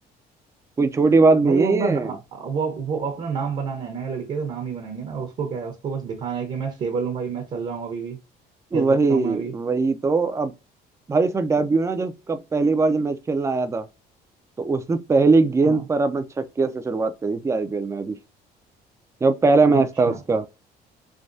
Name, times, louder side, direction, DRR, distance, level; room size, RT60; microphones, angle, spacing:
voice 1, 0.8-2.1 8.7-10.5 11.1-13.9 14.6-18.2 19.2-20.5, right 3 dB, 15° right, 0.4 m, -20 dB
voice 2, 1.4-8.2 8.7-9.5 15.6-15.8 19.7-20.2, right 5 dB, 45° right, 0.9 m, -29 dB
3.4 x 2.2 x 2.6 m
cardioid pair, 110°, 17 cm